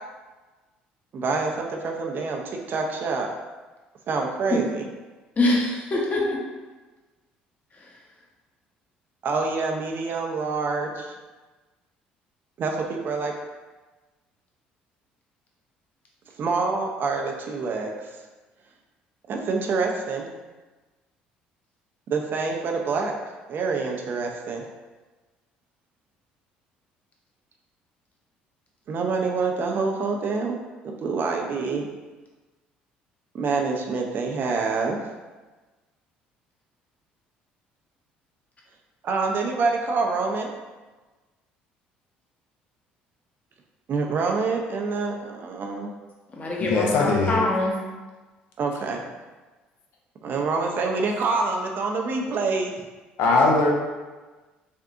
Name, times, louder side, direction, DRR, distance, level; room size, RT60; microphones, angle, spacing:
voice 1, 1.1-3.3 4.1-4.8 9.2-11.1 12.6-13.3 16.4-18.1 19.3-20.3 22.1-23.2 23.5-24.6 28.9-30.6 30.8-31.9 33.3-35.0 39.0-40.5 43.9-45.9 48.6-49.0 50.2-52.7, right 4 dB, 50° right, 1 dB, 0.5 m, -26 dB
voice 2, 5.4-6.4 46.3-47.8, left 2 dB, 35° left, -3 dB, 0.9 m, -24 dB
voice 3, 46.6-47.4 53.2-53.7, left 3 dB, 70° left, 0 dB, 0.6 m, -20 dB
3.5 x 2.6 x 2.4 m, 1.2 s
hypercardioid pair, 65°, 4 cm